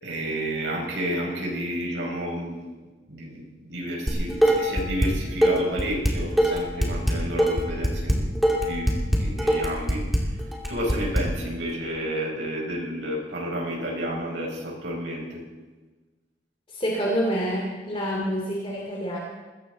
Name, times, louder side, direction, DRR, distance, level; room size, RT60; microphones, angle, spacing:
voice 1, 0.0-2.6 3.1-8.2 8.6-10.1 10.7-15.4, equal, 80° right, -2 dB, 5.9 m, -31 dB
Dishes pots and pans, 4.1-5.1 5.4-11.2, equal, ahead, 2.3 m, -22 dB
voice 2, 16.7-19.2, equal, 30° left, -2 dB, 2.6 m, -27 dB
21.0 x 16.0 x 4.1 m, 1.3 s
head